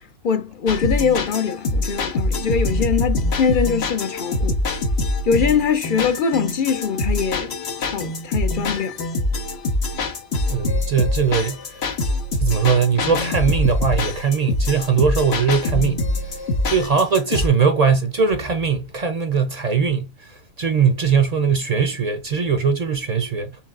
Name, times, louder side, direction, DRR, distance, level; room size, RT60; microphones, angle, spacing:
voice 1, 0.0-4.6 5.2-9.0, left 6 dB, 60° left, 0.7 m, -22 dB
sound 1, 0.7-17.5, left 2 dB, 80° left, 1.2 m, -24 dB
voice 2, 10.5-11.6 12.4-16.0 16.6-20.1 20.6-23.5, right 6 dB, 50° right, 0.6 m, -20 dB
4.5 x 3.9 x 2.4 m
omnidirectional pair, 1.1 m